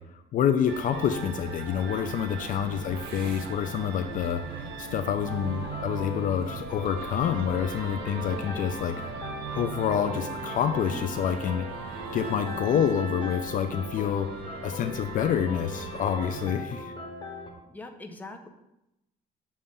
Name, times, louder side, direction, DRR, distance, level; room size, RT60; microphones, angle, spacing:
voice 1, 0.3-16.9, left 8 dB, 55° left, 8 dB, 0.4 m, -28 dB
sound 1, 0.7-16.5, right 5 dB, 75° right, 0.8 m, -39 dB
sound 2, 5.3-17.5, left 3 dB, 25° left, 1.3 m, -40 dB
voice 2, 17.7-18.5, left 2 dB, 10° left, 4 dB, 0.6 m, -43 dB
7.0 x 2.5 x 5.4 m, 0.89 s
cardioid pair, 110°, 17 cm